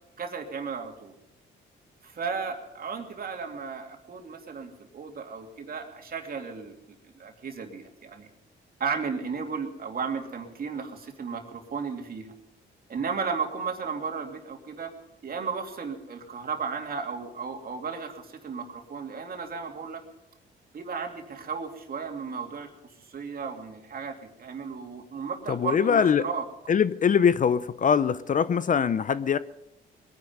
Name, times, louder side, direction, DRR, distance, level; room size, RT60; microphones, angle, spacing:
voice 1, 0.2-1.1 2.0-6.7 7.1-8.3 8.8-12.3 12.9-14.9 15.2-20.0 20.7-22.7 23.0-26.4, right 5 dB, 50° right, 2.7 m, -34 dB
voice 2, 25.5-26.3 26.7-29.4, left 7 dB, 40° left, 0.6 m, -22 dB
21.5 x 10.5 x 5.4 m
cardioid pair, 90°, 20 cm